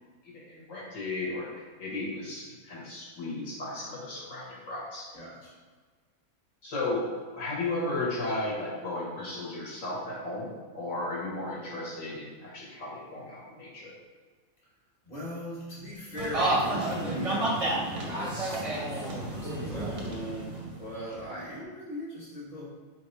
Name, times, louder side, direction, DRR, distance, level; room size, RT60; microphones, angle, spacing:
voice 1, 0.2-5.1 6.6-7.1 7.3-13.9 20.3-20.4, left 2 dB, 70° left, -6 dB, 1.4 m, -35 dB
voice 2, 5.1-5.5 15.0-22.7, equal, 35° left, -7 dB, 1.2 m, -39 dB
sound 1, 16.2-21.2, right 1 dB, 40° right, 0.5 m, -30 dB
3.4 x 2.9 x 4.5 m, 1.5 s
omnidirectional pair, 1.4 m